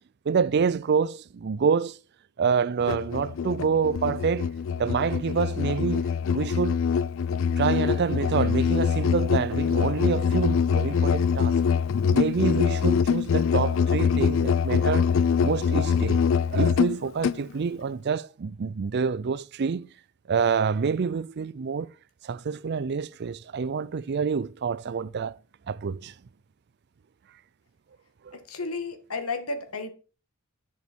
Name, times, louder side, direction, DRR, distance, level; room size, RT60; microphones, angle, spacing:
voice 1, 0.3-2.0 2.4-4.5 4.8-6.9 7.6-11.5 12.1-15.1 15.4-16.2 16.5-19.9 20.3-21.9 22.2-25.4 25.7-26.1 28.3-28.4, right 6 dB, 50° right, 0.4 m, -27 dB
Musical instrument, 2.8-17.4, left 6 dB, 65° left, 0.3 m, -24 dB
voice 2, 28.3-29.9, left 3 dB, 85° left, 1.8 m, -33 dB
9.9 x 6.4 x 4.5 m
head